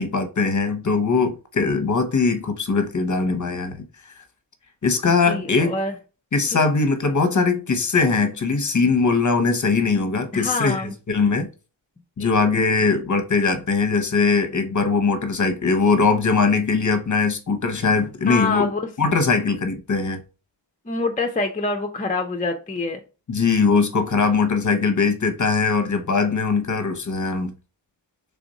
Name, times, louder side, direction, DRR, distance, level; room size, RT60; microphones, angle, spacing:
voice 1, 0.0-3.8 4.8-5.8 6.3-11.5 12.2-18.7 19.0-20.2 23.3-27.5, left 4 dB, 40° left, 0.8 m, -21 dB
voice 2, 5.3-5.9 6.5-6.6 10.3-10.9 12.2-12.3 18.3-18.8 20.9-23.0, left 3 dB, 20° left, 0.5 m, -26 dB
3.5 x 2.5 x 4.0 m
cardioid pair, 50°, 45 cm